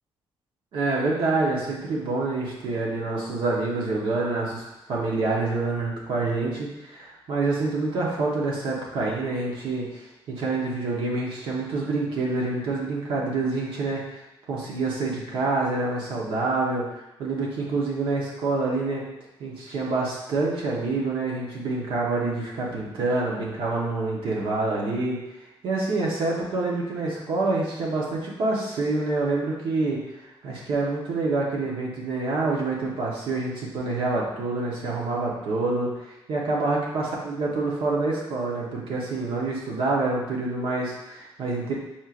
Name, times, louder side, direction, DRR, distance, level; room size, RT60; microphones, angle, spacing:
voice 1, 0.7-14.0 14.5-19.0 19.4-25.2 25.6-30.0 30.4-35.9 36.3-41.7, right 3 dB, 70° right, -3 dB, 1.1 m, -27 dB
4.5 x 4.3 x 2.5 m, 0.92 s
cardioid pair, 115°, 9 cm